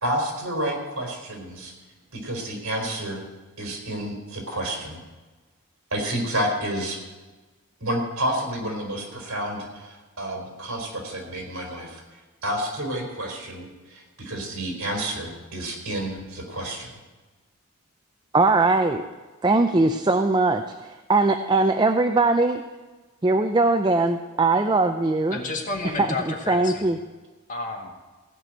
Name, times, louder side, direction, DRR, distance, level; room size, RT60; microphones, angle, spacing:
voice 1, 0.0-1.7 2.1-3.2 3.6-5.0 5.9-7.0 7.8-12.0 12.4-16.9, right 1 dB, 65° right, 1 dB, 3.9 m, -30 dB
voice 2, 18.3-19.1 19.4-22.6 23.2-25.4 26.0-27.0, right 3 dB, 20° right, 6 dB, 0.4 m, -21 dB
voice 3, 25.3-26.9 27.5-27.9, left 3 dB, 35° left, 2 dB, 1.8 m, -31 dB
16.5 x 6.0 x 9.0 m, 1.3 s
head